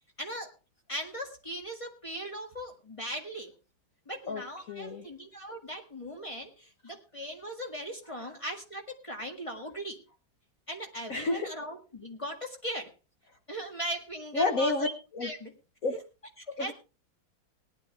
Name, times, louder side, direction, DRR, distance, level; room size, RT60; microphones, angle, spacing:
voice 1, 0.2-0.5 0.9-3.5 4.1-10.0 10.7-12.9 13.5-14.9 15.2-15.5 16.5-16.7, equal, 15° left, 3 dB, 1.7 m, -39 dB
voice 2, 4.7-5.1 8.1-8.3 11.1-11.5 14.3-15.3 15.8-15.9 16.6-16.7, left 3 dB, 50° left, 5 dB, 1.3 m, -30 dB
18.5 x 10.5 x 3.3 m, 0.32 s
omnidirectional pair, 2.2 m